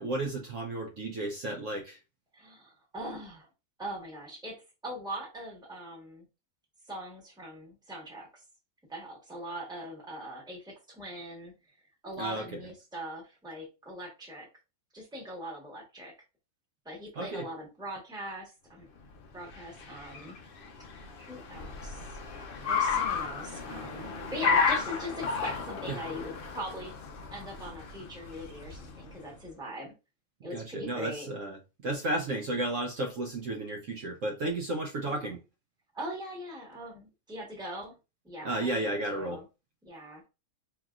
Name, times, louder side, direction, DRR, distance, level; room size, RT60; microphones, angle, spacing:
voice 1, 0.0-2.0 12.2-12.6 17.1-17.5 25.9-26.0 30.5-35.4 38.4-39.4, right 2 dB, 65° right, 1.0 m, -33 dB
voice 2, 2.3-3.5 3.8-4.6 4.8-6.2 6.9-8.4 8.9-11.5 12.0-14.5 14.9-16.1 16.8-18.9 19.3-20.4 21.2-22.0 22.6-26.9 27.3-29.9 30.4-31.3 35.1-35.3 35.9-38.0 38.2-39.4 39.8-40.3, equal, 5° right, 1.2 m, -41 dB
Car, 19.1-29.4, left 5 dB, 60° left, 0.6 m, -33 dB
4.6 x 3.0 x 2.4 m
omnidirectional pair, 1.6 m